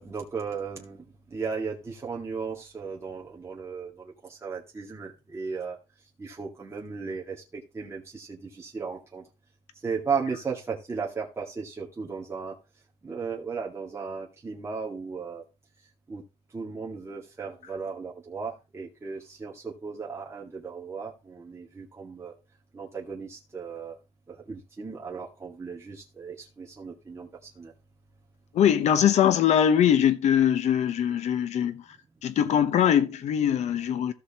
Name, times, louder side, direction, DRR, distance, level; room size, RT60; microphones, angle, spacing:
voice 1, 0.0-5.8 6.2-9.2 9.8-12.6 13.0-15.4 16.1-16.2 16.5-22.3 22.7-24.0 24.3-27.7, right 5 dB, 25° right, 2.2 m, -36 dB
voice 2, 28.5-31.8 32.2-34.1, left 9 dB, 75° left, 1.1 m, -22 dB
15.0 x 6.4 x 3.0 m
cardioid pair, 110°, 12 cm